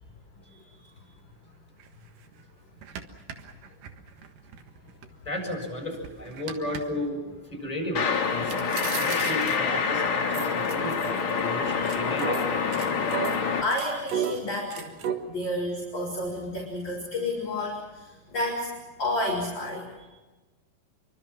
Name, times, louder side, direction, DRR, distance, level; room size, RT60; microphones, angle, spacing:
voice 1, 0.4-0.9 13.6-14.9 15.3-18.7 19.0-20.1, left 1 dB, 25° left, -1 dB, 5.0 m, -31 dB
sound 1, 1.8-1.9 2.3-2.4 2.8-5.1 5.5-6.8 8.5-9.8 10.3-11.4 11.7-15.1, right 8 dB, 60° right, 2.8 m, -34 dB
voice 2, 5.2-12.9, left 1 dB, 10° left, 1 dB, 7.3 m, -34 dB
sound 2, 7.9-13.6, left 5 dB, 45° left, 2.8 m, -27 dB
27.0 x 24.5 x 6.1 m, 1.2 s
omnidirectional pair, 4.9 m